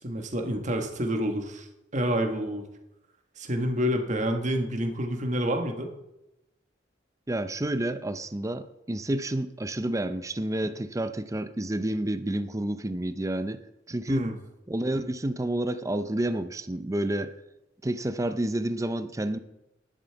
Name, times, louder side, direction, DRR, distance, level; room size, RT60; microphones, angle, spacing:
voice 1, 0.0-1.7 1.9-2.6 3.4-5.9 14.1-14.3, equal, 40° right, 1.5 m, -28 dB
voice 2, 7.3-13.6 13.9-14.3 14.7-17.3 17.8-19.4, right 1 dB, 15° right, 0.6 m, -29 dB
11.5 x 11.0 x 4.6 m
head